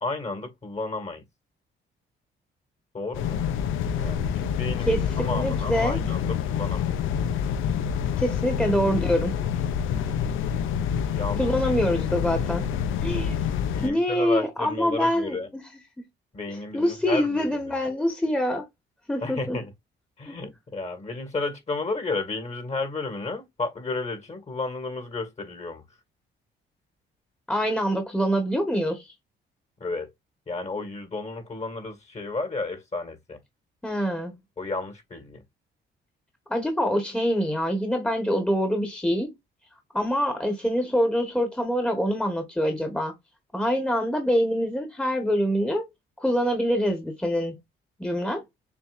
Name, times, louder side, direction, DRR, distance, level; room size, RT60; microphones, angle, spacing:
voice 1, 0.0-1.2 2.9-3.4 4.0-6.9 8.5-8.6 11.1-11.7 13.7-15.5 16.3-17.8 19.2-19.7 20.2-25.8 29.8-30.1 30.5-33.4 34.6-35.4, left 3 dB, 35° left, 1.9 m, -32 dB
sound 1, 3.1-13.9, left 8 dB, 85° left, 0.6 m, -27 dB
voice 2, 4.9-6.0 8.2-9.4 11.4-12.7 13.0-13.4 13.8-15.6 16.7-18.6 19.1-19.6 20.3-20.4 27.5-29.1 33.8-34.4 36.5-39.3 39.9-43.1 43.5-45.8 46.2-47.5 48.0-48.4, equal, 5° left, 1.3 m, -25 dB
7.1 x 2.5 x 2.5 m
cardioid pair, 90°, 20 cm